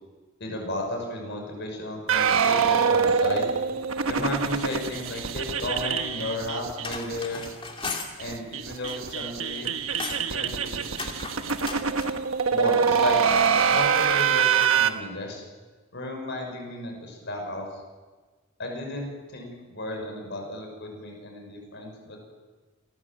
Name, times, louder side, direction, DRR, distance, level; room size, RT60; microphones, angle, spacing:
voice 1, 0.4-3.5 4.1-7.5 8.2-9.7 10.3-11.6 12.5-13.2 13.5-15.4 15.9-17.7 18.6-22.2, left 2 dB, 60° left, 2 dB, 6.0 m, -34 dB
sound 1, 2.1-7.2 7.4-7.5 7.8-7.9 8.2-14.9, right 6 dB, 80° right, 1.2 m, -24 dB
sound 2, 6.6-8.1 8.6-9.3 9.6-10.3 10.9-12.1, left 4 dB, 25° left, 2.7 m, -36 dB
28.0 x 15.0 x 7.4 m, 1.4 s
head